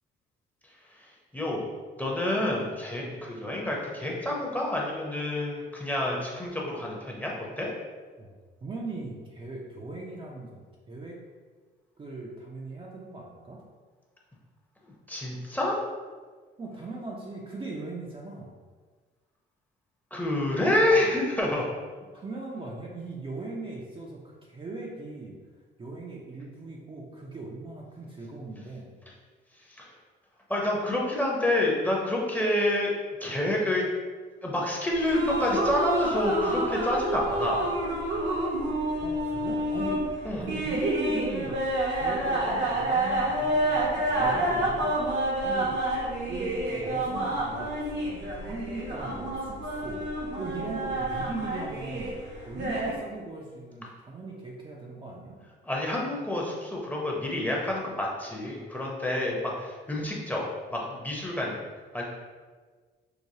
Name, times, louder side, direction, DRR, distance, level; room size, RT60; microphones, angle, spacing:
voice 1, 1.3-1.6 2.0-7.7 14.8-15.8 20.1-21.7 29.7-29.9 30.5-32.9 33.2-33.8 34.4-37.8 40.2-40.5 55.6-60.4 60.7-61.6 61.9-62.0, left 1 dB, 10° left, -3 dB, 0.8 m, -28 dB
voice 2, 8.6-11.2 12.0-13.6 16.6-18.6 22.1-25.4 25.8-28.9 39.0-40.0 40.4-41.6 42.0-45.0 45.4-45.8 46.3-50.1 50.4-52.1 52.5-55.4, right 3 dB, 25° right, -3 dB, 0.5 m, -39 dB
sound 1, 34.9-52.9, right 1 dB, 65° right, 0.9 m, -29 dB
4.7 x 2.2 x 2.7 m, 1.5 s
cardioid pair, 90°, 20 cm